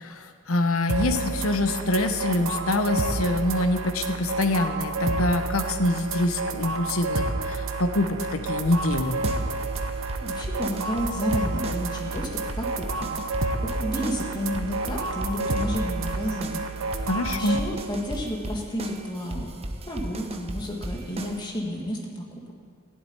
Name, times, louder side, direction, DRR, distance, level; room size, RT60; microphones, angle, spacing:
voice 1, 0.0-9.2 17.1-17.6, left 2 dB, 80° left, 7 dB, 1.1 m, -25 dB
sound 1, 0.9-17.6, right 3 dB, 70° right, 1.0 m, -30 dB
sound 2, 8.6-21.5, right 1 dB, 30° right, 0.9 m, -36 dB
voice 2, 10.2-13.1 13.8-16.6 17.2-19.5 19.9-22.2, equal, 20° left, -1 dB, 2.1 m, -31 dB
14.5 x 7.9 x 9.9 m, 2.2 s
head